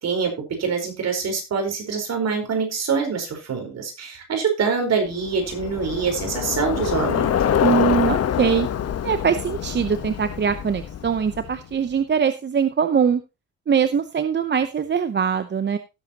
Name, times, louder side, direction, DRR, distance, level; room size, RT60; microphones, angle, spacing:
voice 1, 0.0-7.3, right 5 dB, 60° right, 4 dB, 4.6 m, -25 dB
Bicycle, 5.2-11.7, left 9 dB, 55° left, 1.1 m, -25 dB
voice 2, 7.6-8.7 9.0-13.2 13.7-15.8, right 7 dB, 35° right, 10 dB, 0.8 m, -22 dB
16.5 x 7.7 x 2.9 m, 0.27 s
cardioid pair, 90°, 30 cm